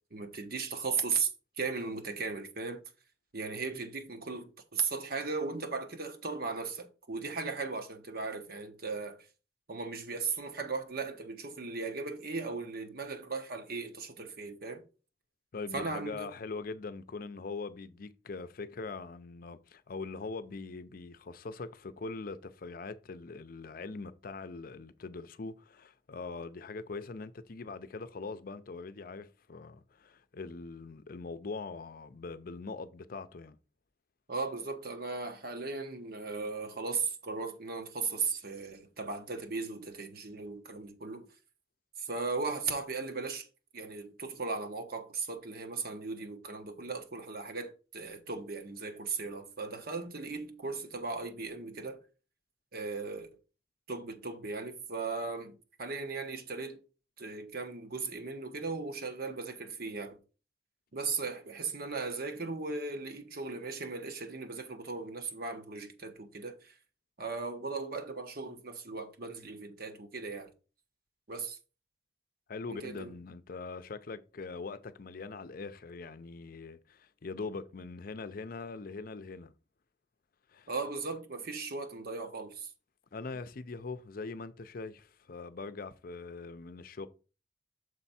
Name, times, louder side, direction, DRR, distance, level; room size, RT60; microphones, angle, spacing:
voice 1, 0.1-1.3 1.6-2.8 3.3-9.2 9.7-14.8 15.7-16.3 34.3-41.3 42.0-43.5 43.7-52.0 52.7-53.3 53.9-56.8 57.2-60.2 60.9-66.7 67.2-70.5 71.3-71.6 72.7-73.1 80.7-82.7, right 4 dB, 60° right, 1.0 m, -37 dB
voice 2, 15.5-33.6 72.5-79.5 80.5-80.7 83.1-87.1, left 4 dB, 55° left, 0.6 m, -42 dB
6.6 x 4.5 x 4.2 m
head